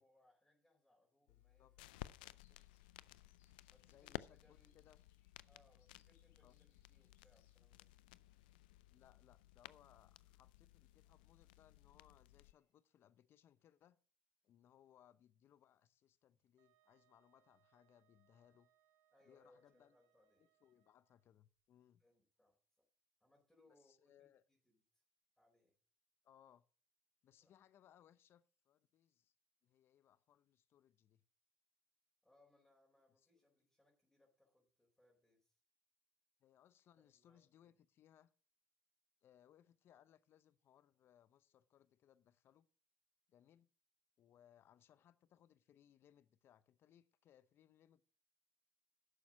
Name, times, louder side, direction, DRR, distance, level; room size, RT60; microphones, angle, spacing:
voice 1, 0.0-2.6 3.7-4.7 5.5-7.9 19.1-20.5 22.0-22.5 23.2-25.0 25.4-25.7 27.4-27.5 32.2-35.6 37.0-37.8, left 2 dB, 10° left, 4.2 m, -74 dB
sound 1, 1.3-12.5, left 16 dB, 85° left, 0.4 m, -57 dB
voice 2, 1.3-1.7 3.8-5.0 6.4-6.5 8.9-14.0 14.4-18.7 19.2-20.0 20.4-22.0 23.7-24.4 26.2-26.7 27.2-29.3 29.6-31.2 33.2-33.5 36.4-38.3 39.2-42.7 43.3-43.7 44.2-48.0, left 10 dB, 55° left, 0.7 m, -69 dB
sound 2, 2.2-12.7, left 7 dB, 70° left, 3.3 m, -85 dB
Wind instrument woodwind instrument, 16.6-21.3, right 11 dB, 75° right, 1.2 m, -79 dB
11.0 x 7.1 x 6.1 m
hypercardioid pair, 75°, 5 cm